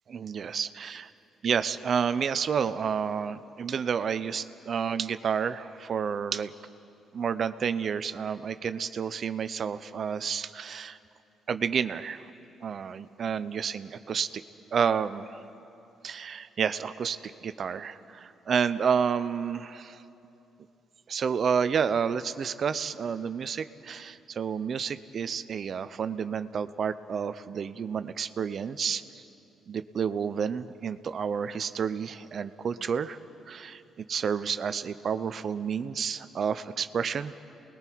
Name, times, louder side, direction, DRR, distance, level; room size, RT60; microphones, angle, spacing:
voice 1, 0.1-1.1 1.4-6.5 7.1-11.0 11.5-12.3 12.6-14.4 14.7-15.3 16.0-20.0 21.1-29.2 29.7-33.2 33.5-37.3, right 7 dB, 55° right, 13 dB, 0.6 m, -30 dB
29.0 x 20.5 x 4.6 m, 2.8 s
cardioid pair, 90°, 0 cm